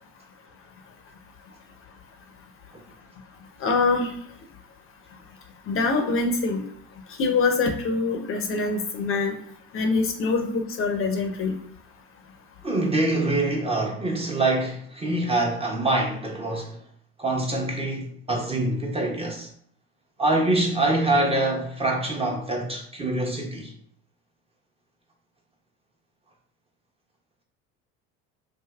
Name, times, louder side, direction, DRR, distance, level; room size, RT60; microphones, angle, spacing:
voice 1, 3.6-4.1 5.7-6.6 7.2-9.3 9.7-11.5, left 4 dB, 40° left, 0.6 m, -24 dB
voice 2, 12.6-16.8 17.2-19.5 20.2-23.7, right 2 dB, 20° right, 0.7 m, -25 dB
3.3 x 2.5 x 2.3 m
hypercardioid pair, 80°, 33 cm